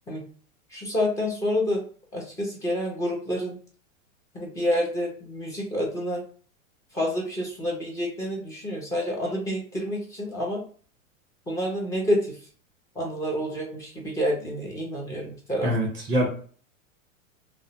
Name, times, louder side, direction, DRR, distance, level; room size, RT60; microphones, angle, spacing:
voice 1, 0.7-1.8 2.1-3.6 4.3-6.2 6.9-10.6 11.5-12.3 13.0-15.7, equal, 10° left, -2 dB, 0.5 m, -28 dB
voice 2, 15.6-16.3, equal, 20° right, -3 dB, 1.0 m, -24 dB
2.4 x 2.0 x 2.9 m, 0.43 s
supercardioid pair, 140°, 41 cm